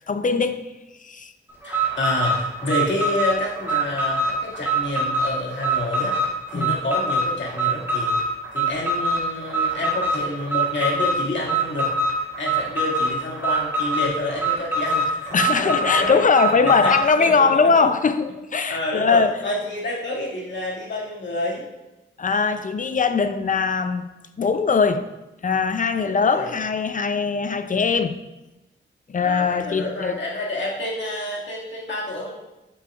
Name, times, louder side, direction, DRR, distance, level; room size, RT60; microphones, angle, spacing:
voice 1, 0.1-0.6 1.0-1.3 6.5-6.8 15.3-19.4 22.2-24.1 24.4-25.1 25.4-28.2 29.1-30.2, left 5 dB, 40° left, 10 dB, 0.5 m, -21 dB
voice 2, 1.6-6.2 6.5-8.2 8.5-11.9 12.2-16.2 16.6-17.9 18.7-21.6 26.0-26.5 29.2-32.4, left 1 dB, 65° left, -4 dB, 2.2 m, -28 dB
Alarm, 1.6-17.1, right 1 dB, 10° right, 2.6 m, -24 dB
8.7 x 7.5 x 2.4 m, 1.0 s
cardioid pair, 85°, 21 cm